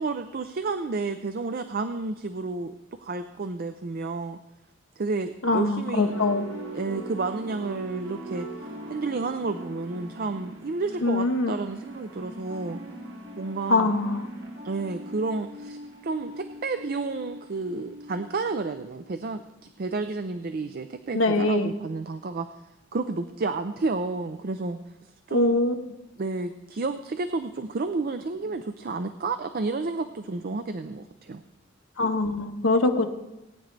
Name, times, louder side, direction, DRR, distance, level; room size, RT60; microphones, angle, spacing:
voice 1, 0.0-2.7 3.0-4.4 5.0-6.1 6.7-8.5 8.9-12.8 13.4-14.0 14.6-19.4 19.8-22.5 22.9-24.8 25.3-25.6 26.2-31.4, right 3 dB, 45° right, 9 dB, 0.5 m, -31 dB
voice 2, 5.4-6.4 11.0-11.5 13.7-14.2 21.1-21.7 25.3-25.7 32.0-33.1, left 2 dB, 85° left, 4 dB, 1.2 m, -23 dB
sound 1, 5.9-19.3, right 1 dB, 65° right, 1.9 m, -40 dB
19.5 x 9.3 x 3.3 m, 0.94 s
head